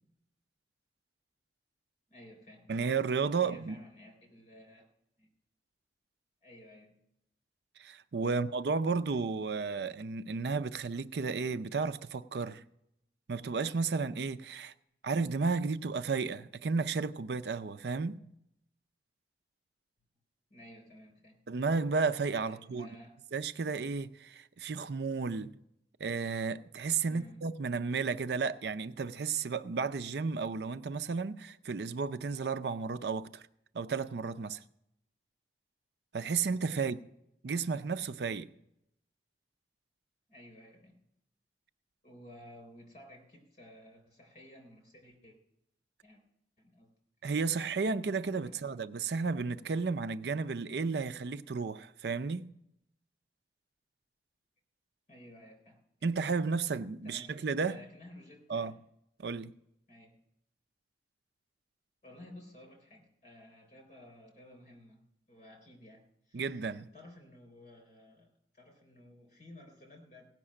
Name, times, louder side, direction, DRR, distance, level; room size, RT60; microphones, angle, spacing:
voice 1, 2.1-2.9 3.4-4.8 5.2-5.3 6.4-7.0 8.3-8.4 20.5-21.4 22.5-23.2 27.1-27.5 36.7-36.9 40.3-41.0 42.0-45.4 46.0-46.2 46.6-46.9 48.5-48.8 55.1-55.8 57.0-58.8 59.9-60.2 62.0-66.4 66.9-70.3, left 1 dB, 40° left, 3.7 m, -54 dB
voice 2, 2.7-3.8 7.8-12.6 13.3-14.7 15.0-18.2 21.5-22.9 23.3-25.5 26.0-33.4 33.7-34.6 36.1-37.0 37.4-38.5 47.2-52.5 56.0-57.8 58.5-58.7 59.2-59.5 66.3-66.9, right 4 dB, 65° right, 0.5 m, -33 dB
16.5 x 6.0 x 8.7 m
head